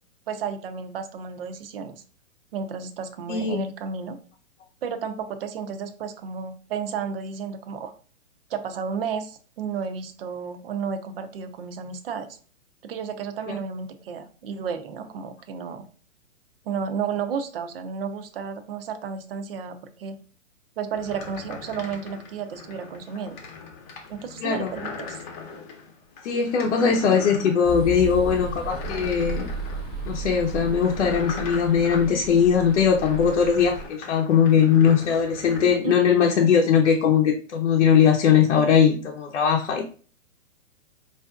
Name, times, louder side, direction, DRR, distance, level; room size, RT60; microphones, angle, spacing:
voice 1, 0.3-2.0 2.5-4.2 4.8-7.9 8.5-12.3 12.8-15.9 16.7-20.2 20.8-23.4 24.1-25.2 35.8-35.9, right 6 dB, 45° right, 9 dB, 0.6 m, -32 dB
voice 2, 3.3-3.6 13.5-13.6 24.4-24.7 26.2-29.5 30.1-39.8, left 7 dB, 65° left, 1 dB, 0.8 m, -20 dB
sound 1, 20.9-35.8, left 5 dB, 25° left, 0.8 m, -40 dB
sound 2, 27.6-33.8, right 2 dB, ahead, 0.3 m, -34 dB
4.7 x 2.5 x 2.3 m, 0.41 s
hypercardioid pair, 140°, 40 cm